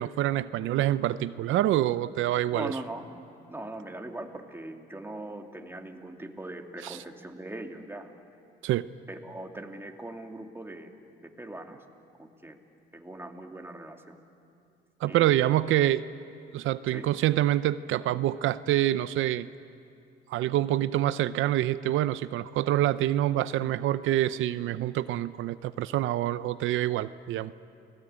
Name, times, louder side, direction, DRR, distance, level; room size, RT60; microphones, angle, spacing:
voice 1, 0.0-2.8 6.8-7.0 8.6-8.9 15.0-16.0 16.5-19.5 20.3-27.5, right 13 dB, 85° right, 14 dB, 0.6 m, -26 dB
voice 2, 2.5-3.1 3.5-8.1 9.1-10.9 11.2-11.8 12.2-12.6 12.9-14.2 15.1-15.5 16.9-17.1, right 1 dB, 10° right, 3 dB, 2.4 m, -40 dB
30.0 x 19.0 x 8.8 m, 2.5 s
cardioid pair, 90°, 20 cm